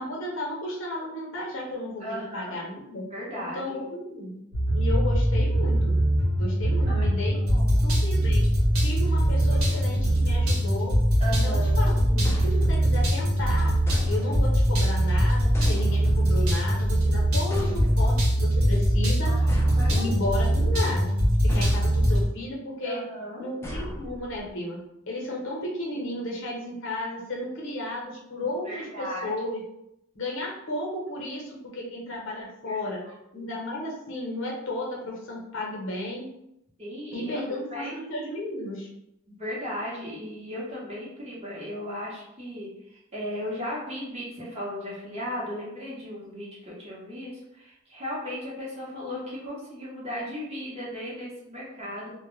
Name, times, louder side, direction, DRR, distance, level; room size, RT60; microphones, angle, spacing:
voice 1, 0.0-3.0 3.4-4.4 4.7-6.0 6.3-7.4 7.8-8.5 8.8-10.9 11.3-13.7 14.1-19.3 19.9-21.1 21.4-23.0 23.4-24.8 25.1-29.6 30.1-33.0 33.3-36.3 37.1-38.9, left 1 dB, 60° left, -2 dB, 0.7 m, -33 dB
voice 2, 2.0-2.5 3.0-3.8 6.9-7.1 7.5-7.8 9.4-9.6 11.2-11.9 16.4-16.5 19.3-20.1 22.8-23.5 25.9-26.0 28.4-29.3 32.6-33.0 33.3-33.5 36.8-37.3 37.7-38.0 39.3-52.1, equal, 30° right, -6 dB, 0.8 m, -36 dB
sound 1, 4.5-22.3, equal, 80° right, 0.7 m, -22 dB
sound 2, 12.2-13.1 13.9-14.7 15.5-16.4 17.5-18.3 19.5-20.5 21.5-22.3 23.6-24.5, equal, 10° left, 0.3 m, -36 dB
2.1 x 2.0 x 3.0 m, 0.83 s
head